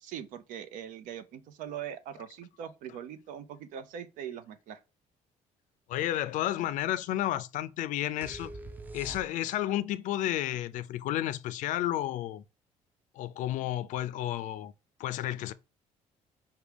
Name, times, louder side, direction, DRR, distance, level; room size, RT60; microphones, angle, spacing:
voice 1, 0.0-4.8, right 9 dB, 90° right, 0.7 m, -41 dB
voice 2, 5.9-8.5 8.9-12.4 13.2-14.7 15.0-15.5, left 13 dB, 75° left, 0.4 m, -31 dB
sound 1, 8.2-9.8, right 2 dB, 15° right, 0.4 m, -43 dB
5.9 x 2.3 x 3.3 m
cardioid pair, 145°, 13 cm